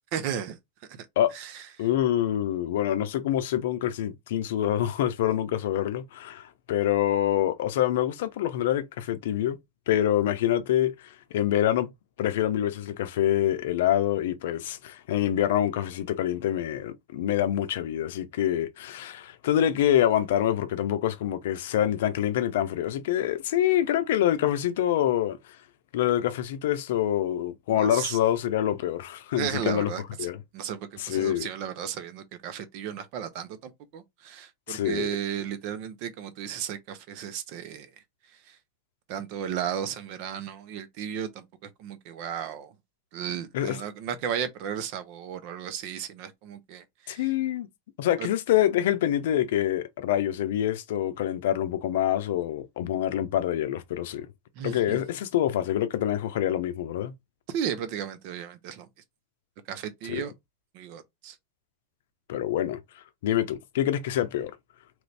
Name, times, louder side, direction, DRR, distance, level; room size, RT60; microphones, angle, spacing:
voice 1, 0.1-0.6 0.9-1.1 1.3-1.9 27.7-28.2 29.3-37.9 38.3-38.6 39.1-42.7 43.1-47.3 48.2-48.3 54.5-55.0 57.5-58.9 59.7-60.3 60.7-61.4, right 9 dB, 55° right, 0.7 m, -34 dB
voice 2, 1.8-9.6 9.9-11.9 12.2-25.4 25.9-29.9 30.2-30.4 31.0-31.5 34.7-35.1 43.5-43.8 47.1-47.7 48.0-54.3 54.6-57.1 60.1-60.2 62.3-62.8 63.2-64.5, left 11 dB, 75° left, 0.5 m, -26 dB
3.0 x 2.6 x 3.2 m
supercardioid pair, 125°, 0 cm